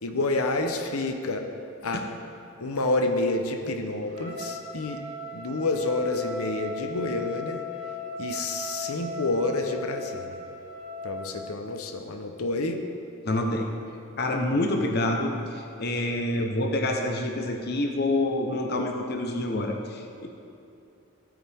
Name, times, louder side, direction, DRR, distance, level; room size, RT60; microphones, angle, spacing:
voice 1, 0.0-1.4 1.8-2.0 2.6-5.0 5.3-7.6 8.2-10.4 11.0-12.8 16.4-16.5, left 2 dB, 90° left, 5 dB, 0.8 m, -28 dB
Trumpet, 4.1-11.4, left 1 dB, 70° right, 2.9 m, -38 dB
voice 2, 13.2-13.7 14.2-20.3, left 1 dB, 50° left, 3 dB, 0.9 m, -27 dB
15.0 x 8.9 x 3.5 m, 2.7 s
head